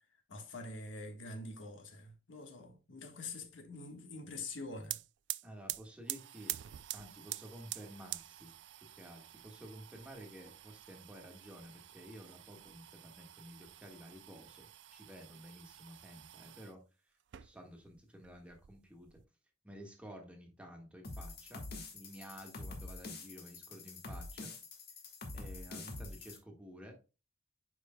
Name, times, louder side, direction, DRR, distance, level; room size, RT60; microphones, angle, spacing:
voice 1, 0.3-5.0, left 2 dB, 85° left, 1.4 m, -45 dB
sound 1, 4.5-4.6 4.8-16.7 17.2-18.0 18.2-19.2, right 16 dB, 65° right, 0.3 m, -47 dB
voice 2, 5.4-6.6 6.9-19.2 19.6-21.7 21.9-24.5 25.3-27.0, equal, 5° right, 1.5 m, -52 dB
sound 2, 21.0-26.4, left 2 dB, 55° left, 1.5 m, -46 dB
9.4 x 4.9 x 2.2 m
head